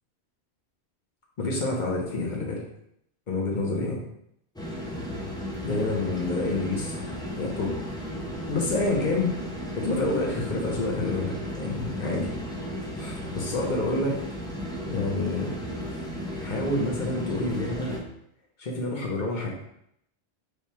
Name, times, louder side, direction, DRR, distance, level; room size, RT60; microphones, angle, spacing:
voice 1, 1.4-2.6 3.3-4.0 5.6-7.7 8.5-9.3 9.8-12.3 12.9-14.2 14.9-15.5 16.4-18.0 18.6-19.5, left 2 dB, 50° left, -1 dB, 1.0 m, -28 dB
sound 1, 4.6-18.0, equal, 5° left, 0.3 m, -34 dB
3.4 x 2.4 x 4.2 m, 0.74 s
omnidirectional pair, 1.1 m